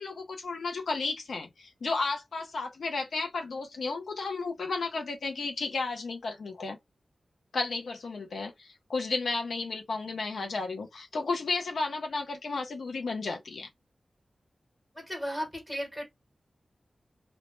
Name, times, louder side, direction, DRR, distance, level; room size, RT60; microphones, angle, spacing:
voice 1, 0.0-6.8 7.5-13.7, left 3 dB, 90° left, 0.5 m, -33 dB
voice 2, 14.9-16.0, equal, 15° left, 1.1 m, -35 dB
2.1 x 2.0 x 2.9 m
wide cardioid pair, 105°, 0 cm